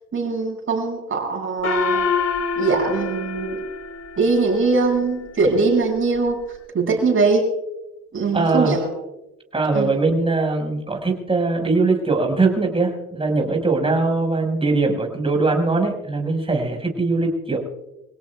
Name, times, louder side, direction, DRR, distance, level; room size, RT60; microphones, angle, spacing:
voice 1, 0.1-2.0 2.6-3.6 4.2-6.4 6.7-7.4 8.1-8.9 9.7-9.9, right 3 dB, 40° right, 2 dB, 6.5 m, -21 dB
Gong, 1.6-4.5, left 4 dB, 45° left, 2.8 m, -25 dB
voice 2, 8.3-8.8 9.5-17.6, right 3 dB, 15° right, 2 dB, 5.2 m, -21 dB
27.0 x 17.5 x 2.3 m, 0.98 s
supercardioid pair, 90°, 33 cm